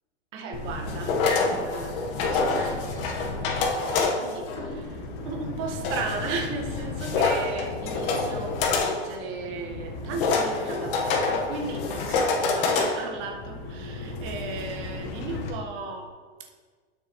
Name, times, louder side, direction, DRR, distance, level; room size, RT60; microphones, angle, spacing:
voice 1, 0.3-16.1 16.4-16.5, right 3 dB, 35° right, 2 dB, 1.3 m, -36 dB
sound 1, 0.5-15.5, left 4 dB, 50° left, 1.3 m, -28 dB
12.0 x 6.2 x 3.1 m, 1.5 s
supercardioid pair, 145°, 36 cm